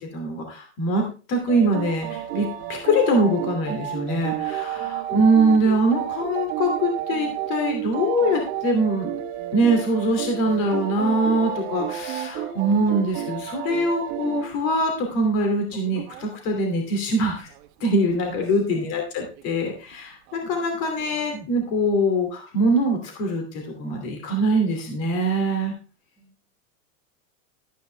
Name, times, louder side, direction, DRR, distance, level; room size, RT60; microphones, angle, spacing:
voice 1, 0.0-9.1 9.5-17.5 17.8-25.7, right 1 dB, 40° left, 3 dB, 2.7 m, -23 dB
sound 1, 1.5-14.5 14.8-14.9 15.3-15.4 15.7-16.3 17.0-18.5 19.4-19.7 20.3-20.7 21.0-21.3, right 11 dB, 45° right, 1.5 m, -31 dB
voice 2, 26.2-26.5, right 3 dB, 5° left, 0 dB, 2.6 m, -54 dB
13.0 x 9.1 x 3.4 m, 0.34 s
supercardioid pair, 165°, 41 cm